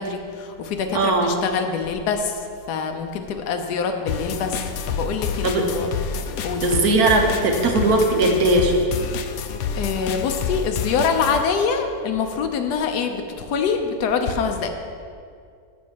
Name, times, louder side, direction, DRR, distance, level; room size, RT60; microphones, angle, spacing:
voice 1, 0.0-5.9 6.4-6.8 9.8-14.7, left 5 dB, 85° left, 5 dB, 1.2 m, -25 dB
voice 2, 0.9-1.4 5.4-5.6 6.6-8.7, right 2 dB, 70° right, 2 dB, 1.5 m, -19 dB
sound 1, 4.1-11.4, left 6 dB, 70° left, 1.0 m, -28 dB
7.4 x 5.3 x 7.3 m, 2.3 s
omnidirectional pair, 1.7 m